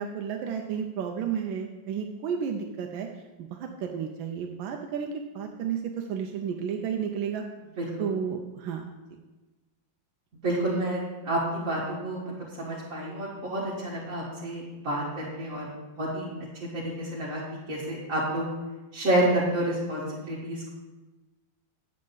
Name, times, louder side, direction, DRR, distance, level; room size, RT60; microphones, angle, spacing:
voice 1, 0.0-3.1 3.4-7.4 8.0-8.8, right 7 dB, 90° right, 3 dB, 1.4 m, -32 dB
voice 2, 7.8-8.1 10.4-15.7 15.9-16.3 16.5-17.4 17.7-18.5 18.9-20.7, right 1 dB, 45° right, -8 dB, 1.8 m, -29 dB
8.4 x 7.6 x 3.9 m, 1.1 s
omnidirectional pair, 2.1 m